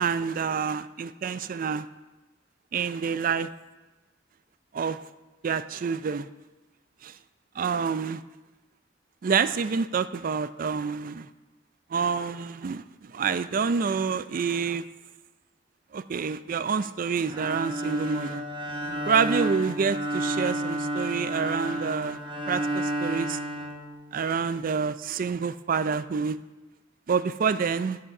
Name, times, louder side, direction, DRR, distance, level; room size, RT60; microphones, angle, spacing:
voice 1, 0.0-1.9 2.7-3.5 4.7-5.0 5.4-6.3 7.0-7.1 7.6-8.2 9.2-11.3 11.9-14.8 15.9-18.4 19.1-22.2 22.5-23.4 24.1-26.4 27.1-28.0, right 6 dB, 45° right, 14 dB, 0.4 m, -27 dB
Bowed string instrument, 17.3-24.4, right 1 dB, 25° right, 1.2 m, -31 dB
11.0 x 9.5 x 4.9 m, 1.1 s
head